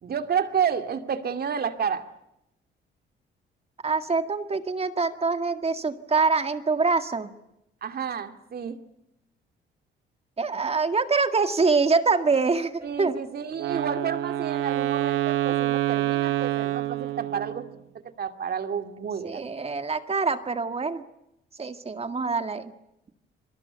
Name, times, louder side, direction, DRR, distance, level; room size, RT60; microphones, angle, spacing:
voice 1, 0.0-2.0 7.8-8.8 12.8-17.7 18.2-19.5, right 7 dB, 50° right, 8 dB, 2.4 m, -30 dB
voice 2, 3.8-7.3 10.4-13.1 19.2-21.0 21.6-22.7, right 4 dB, 30° right, 9 dB, 2.0 m, -25 dB
Wind instrument woodwind instrument, 13.6-17.7, right 14 dB, 85° right, 2.0 m, -27 dB
28.0 x 22.0 x 8.2 m, 0.85 s
cardioid pair, 90°, 20 cm